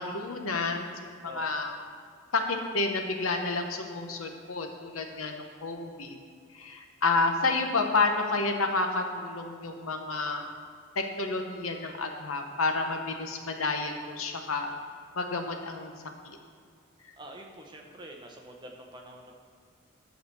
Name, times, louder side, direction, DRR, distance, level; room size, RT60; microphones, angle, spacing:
voice 1, 0.0-1.8 2.3-6.2 6.5-10.5 11.0-14.7 15.2-15.9 16.2-16.4, left 3 dB, 90° left, 4 dB, 1.0 m, -30 dB
voice 2, 17.2-19.3, right 1 dB, 20° right, 1 dB, 0.8 m, -46 dB
10.5 x 4.2 x 7.0 m, 2.2 s
head